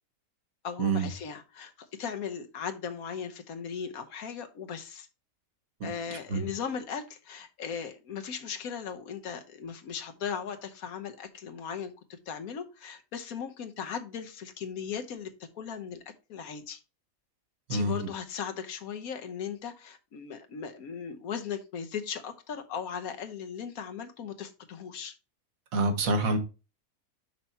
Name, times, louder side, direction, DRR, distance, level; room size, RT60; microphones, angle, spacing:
voice 1, 0.6-5.1 5.8-16.0 16.3-16.8 17.7-25.1, left 7 dB, 85° left, 1.4 m, -38 dB
voice 2, 25.7-26.4, right 3 dB, 75° right, 1.7 m, -26 dB
6.1 x 5.5 x 4.1 m
omnidirectional pair, 1.5 m